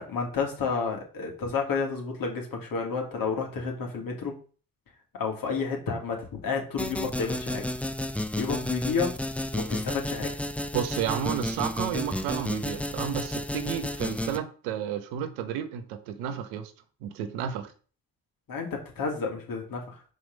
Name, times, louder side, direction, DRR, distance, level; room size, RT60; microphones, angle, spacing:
voice 1, 0.0-4.3 5.1-7.6 8.4-9.1 9.5-10.3 18.5-20.0, left 5 dB, 60° left, 2.5 m, -30 dB
sound 1, 6.8-14.4, left 1 dB, 5° left, 0.8 m, -32 dB
voice 2, 10.7-16.7 17.0-17.7, right 9 dB, 80° right, 1.0 m, -32 dB
6.1 x 5.1 x 5.2 m
hypercardioid pair, 45°, 38 cm